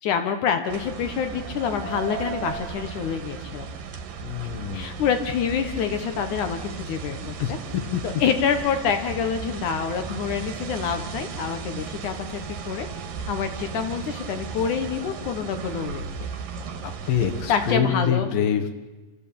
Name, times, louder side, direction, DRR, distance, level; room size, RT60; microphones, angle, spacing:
voice 1, 0.0-3.7 4.7-7.6 8.0-12.4 12.7-12.9 13.3-16.1 17.5-18.3, left 7 dB, 70° left, 8 dB, 2.6 m, -27 dB
sound 1, 0.7-17.8, right 6 dB, 80° right, 3.3 m, -35 dB
voice 2, 4.2-5.0 7.4-8.0 16.8-18.8, left 8 dB, 90° left, 5 dB, 3.1 m, -26 dB
27.0 x 14.5 x 8.7 m, 1.2 s
omnidirectional pair, 3.8 m